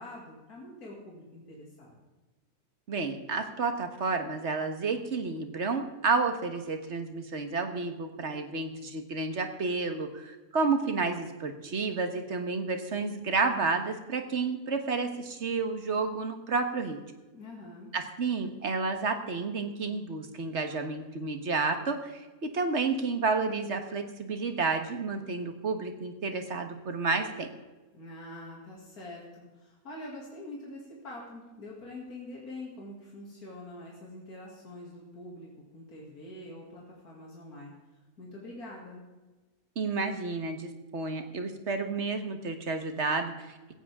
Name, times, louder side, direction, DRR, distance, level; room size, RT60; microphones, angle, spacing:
voice 1, 0.0-2.0 17.3-17.9 27.9-35.5 35.7-37.7 38.2-39.0, left 1 dB, 75° left, -3 dB, 3.1 m, -45 dB
voice 2, 2.9-17.0 17.9-27.5 39.7-43.5, right 4 dB, 50° right, 6 dB, 1.6 m, -31 dB
16.5 x 14.5 x 3.7 m, 1.2 s
omnidirectional pair, 1.6 m